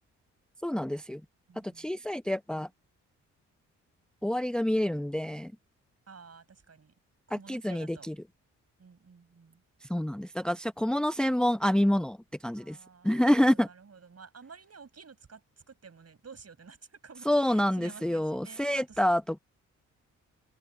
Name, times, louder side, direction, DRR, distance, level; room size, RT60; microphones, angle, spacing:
voice 1, 0.6-1.2 1.6-2.7 4.2-5.5 7.3-8.2 9.8-12.2 12.4-12.8 13.0-13.7 17.3-19.4, left 1 dB, ahead, 0.8 m, -27 dB
voice 2, 1.5-1.9 6.1-6.9 7.3-8.1 8.8-9.6 12.5-15.4 15.7-19.0, right 5 dB, 45° right, 8.0 m, -52 dB
hypercardioid pair, 45°, 35 cm